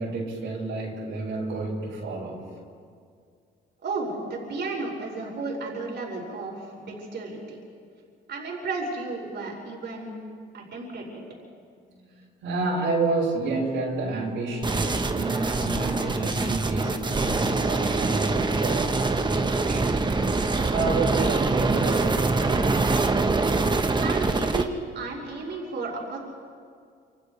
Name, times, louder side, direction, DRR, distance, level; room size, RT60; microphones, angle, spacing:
voice 1, 0.0-2.5 11.9-20.2 20.7-23.0, right 3 dB, 80° right, -7 dB, 5.7 m, -30 dB
voice 2, 3.8-7.6 8.3-10.1 10.5-11.2 24.0-26.2, right 3 dB, 60° right, -2 dB, 5.3 m, -33 dB
sound 1, 14.6-24.6, right 3 dB, 25° right, 1.2 m, -24 dB
29.0 x 27.0 x 3.4 m, 2.3 s
cardioid pair, 90°, 20 cm